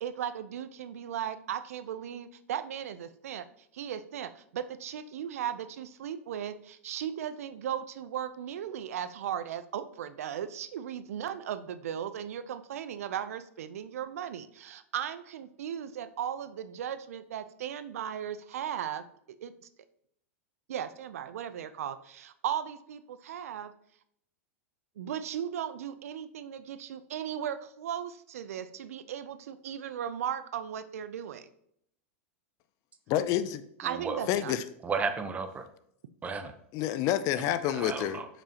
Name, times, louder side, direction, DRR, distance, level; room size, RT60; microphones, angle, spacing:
voice 1, 0.0-3.5 3.7-19.0 19.4-19.5 20.7-23.7 25.0-31.5 33.8-34.5, right 9 dB, 85° right, 13 dB, 0.5 m, -37 dB
voice 2, 33.1-33.6 34.3-34.6 36.7-38.2, left 11 dB, 45° left, 13 dB, 0.5 m, -28 dB
voice 3, 33.8-34.2 34.8-35.6 36.2-36.5 37.7-38.3, right 5 dB, 20° right, 8 dB, 0.8 m, -33 dB
6.5 x 5.9 x 2.9 m, 0.71 s
hypercardioid pair, 125°, 8 cm